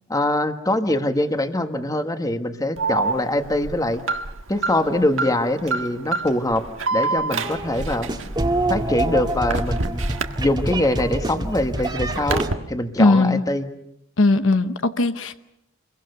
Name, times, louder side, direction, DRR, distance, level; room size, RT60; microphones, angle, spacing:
voice 1, 0.1-4.0 4.5-6.6 6.9-8.1 8.7-10.0 10.4-13.7, left 1 dB, 20° left, 8 dB, 1.5 m, -23 dB
Alarm, 2.8-10.9 11.3-12.5, right 3 dB, 75° right, 1.6 m, -27 dB
sound 1, 7.4-12.5, right 1 dB, 20° right, 1.7 m, -26 dB
voice 2, 13.0-13.4 14.2-15.4, left 2 dB, 70° left, 11 dB, 1.0 m, -18 dB
28.0 x 23.0 x 6.8 m, 0.79 s
head